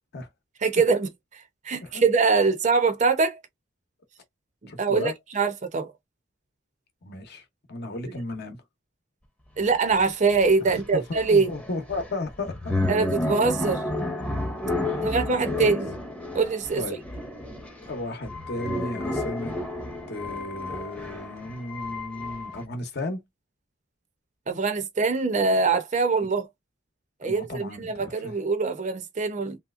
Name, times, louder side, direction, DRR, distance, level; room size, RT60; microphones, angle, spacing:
voice 1, 0.6-1.1 1.6-3.4 4.8-5.9 8.0-8.1 9.6-11.5 12.9-13.8 15.0-15.9 16.3-16.8 24.5-26.5 27.2-29.6, right 4 dB, 40° right, 0.6 m, -23 dB
voice 2, 4.7-5.1 7.0-8.6 10.6-12.8 14.9-15.8 16.8-17.0 17.8-19.6 20.1-23.2 27.2-28.4, left 2 dB, 55° left, 0.9 m, -35 dB
sound 1, 9.6-9.7 9.9-22.6, left 1 dB, 5° left, 0.7 m, -31 dB
3.1 x 2.8 x 2.4 m
head